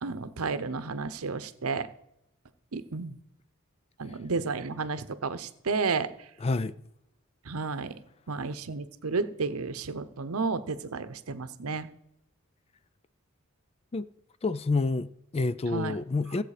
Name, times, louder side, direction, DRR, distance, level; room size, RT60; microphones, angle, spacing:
voice 1, 0.0-1.9 2.7-3.2 4.0-6.1 7.5-7.9 8.3-11.9 15.7-15.9, right 4 dB, 85° right, 0.8 m, -32 dB
voice 2, 6.4-6.8 13.9-14.1 14.4-16.4, left 3 dB, 30° left, 0.4 m, -28 dB
15.5 x 7.7 x 4.9 m
head